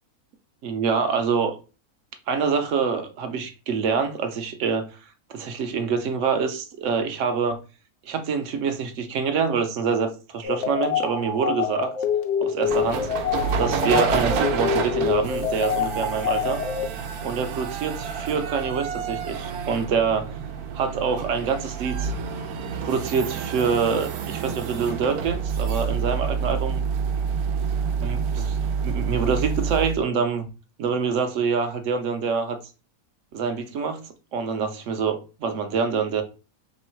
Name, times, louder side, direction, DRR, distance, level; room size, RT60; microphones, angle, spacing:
voice 1, 0.6-1.5 2.3-4.9 5.3-7.6 8.0-11.9 12.4-13.1 13.6-16.6 17.2-20.4 20.7-22.1 22.8-26.8 28.0-28.6 28.8-30.5 30.8-32.6 33.3-34.0 34.3-36.2, right 5 dB, 65° right, 0.9 m, -26 dB
sound 1, 10.4-16.9, left 7 dB, 60° left, 1.0 m, -26 dB
sound 2, 12.7-30.0, right 6 dB, 90° right, 1.1 m, -28 dB
3.3 x 3.1 x 4.4 m
omnidirectional pair, 1.6 m